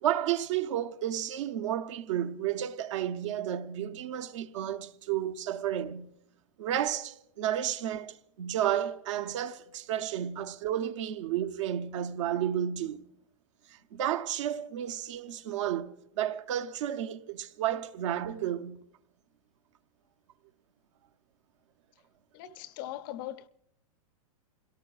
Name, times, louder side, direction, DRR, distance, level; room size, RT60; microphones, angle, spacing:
voice 1, 0.0-6.2 6.6-13.0 13.9-18.8, right 11 dB, 55° right, 0.7 m, -32 dB
voice 2, 22.3-23.5, left 13 dB, 35° left, 0.5 m, -40 dB
29.0 x 17.5 x 2.4 m
supercardioid pair, 155°, 19 cm